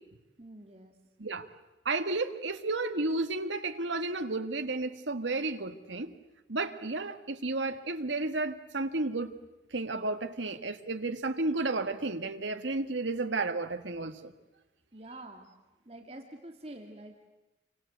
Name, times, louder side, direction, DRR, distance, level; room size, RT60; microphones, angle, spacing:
voice 1, 0.4-0.9 14.9-15.5 15.9-17.3, right 1 dB, 35° right, 3 dB, 2.3 m, -47 dB
voice 2, 1.9-6.1 6.5-9.3 9.7-14.3, right 3 dB, 90° right, 7 dB, 1.6 m, -32 dB
28.5 x 25.0 x 8.0 m, 1.0 s
head